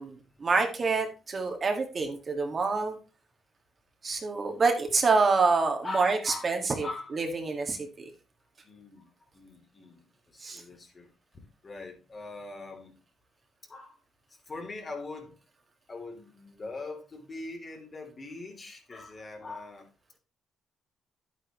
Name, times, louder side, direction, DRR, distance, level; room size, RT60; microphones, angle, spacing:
voice 1, 0.0-3.0 4.0-7.8 10.4-10.6, right 4 dB, 40° right, 2.0 m, -27 dB
voice 2, 5.8-6.5 6.8-7.2 8.6-9.1 9.3-10.0 10.3-11.1 11.6-12.9 13.7-13.9 14.5-15.4 15.9-19.8, left 2 dB, 35° left, 3.2 m, -41 dB
9.8 x 8.8 x 3.1 m
cardioid pair, 90°, 0 cm